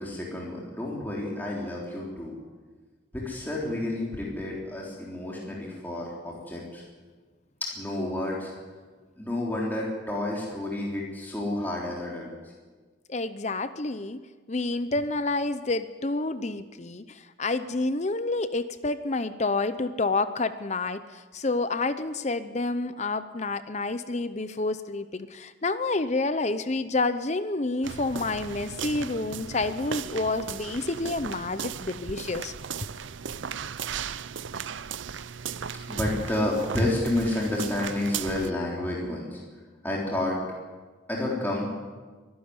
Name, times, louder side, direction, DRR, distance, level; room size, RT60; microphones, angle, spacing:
voice 1, 0.0-2.4 3.1-6.8 7.6-8.5 9.2-12.5 35.9-39.4 39.8-40.4 41.1-41.7, left 1 dB, 10° left, -4 dB, 3.6 m, -30 dB
voice 2, 13.1-14.2 14.5-32.5, left 3 dB, 35° left, 12 dB, 0.7 m, -29 dB
sound 1, 27.8-38.5, right 7 dB, 75° right, 0.6 m, -36 dB
23.0 x 12.0 x 9.6 m, 1.4 s
head